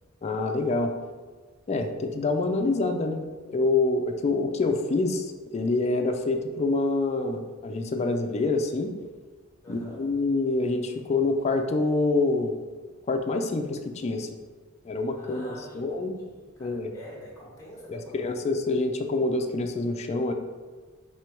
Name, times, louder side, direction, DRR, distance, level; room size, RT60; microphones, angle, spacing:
voice 1, 0.2-0.9 1.7-8.9 9.7-12.6 13.1-14.3 14.8-16.2 16.6-16.9 17.9-20.3, left 3 dB, 30° left, 5 dB, 0.4 m, -26 dB
voice 2, 9.6-10.1 15.1-18.4, equal, 15° left, -5 dB, 1.1 m, -46 dB
3.7 x 3.2 x 4.4 m, 1.4 s
head